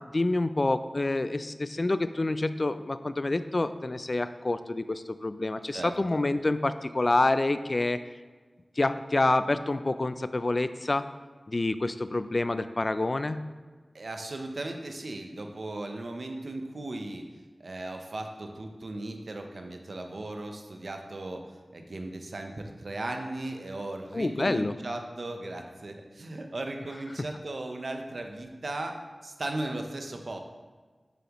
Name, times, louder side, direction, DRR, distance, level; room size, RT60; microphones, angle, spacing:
voice 1, 0.0-8.0 8.8-11.0 11.5-13.5 24.1-24.7 27.2-27.3, left 2 dB, 50° left, 12 dB, 0.3 m, -27 dB
voice 2, 5.7-6.2 13.9-17.2 17.6-29.0 29.2-30.4, right 2 dB, 75° right, 4 dB, 0.7 m, -37 dB
7.1 x 7.0 x 3.0 m, 1.4 s
wide cardioid pair, 60°, 0 cm